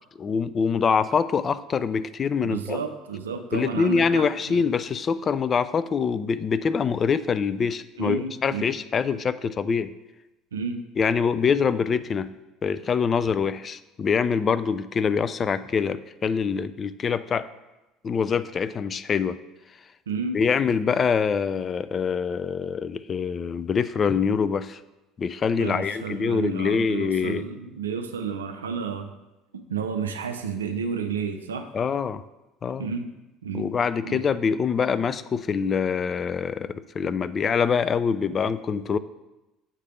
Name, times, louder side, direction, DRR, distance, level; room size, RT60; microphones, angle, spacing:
voice 1, 0.2-2.8 3.5-9.9 11.0-12.3 12.6-17.5 18.0-19.4 20.3-24.8 25.2-27.4 31.7-32.2 32.6-32.9 33.5-39.0, left 6 dB, 40° left, 15 dB, 0.3 m, -25 dB
voice 2, 2.4-4.6 8.0-8.8 10.5-10.8 20.1-20.4 25.6-29.1 29.5-31.7 32.8-33.1 33.4-33.7 34.0-34.2, right 5 dB, 90° right, 7 dB, 0.4 m, -31 dB
7.2 x 3.3 x 5.7 m, 1.0 s
hypercardioid pair, 65°, 0 cm